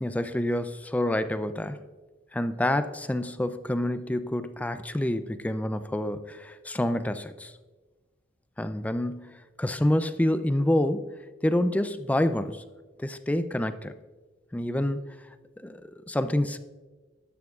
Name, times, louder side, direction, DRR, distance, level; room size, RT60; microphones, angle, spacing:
voice 1, 0.0-1.8 2.3-7.5 8.6-11.0 11.4-12.6 13.0-13.9 14.5-15.0 15.6-16.6, left 1 dB, 10° left, 11 dB, 0.4 m, -27 dB
13.0 x 10.5 x 2.4 m, 1.3 s
head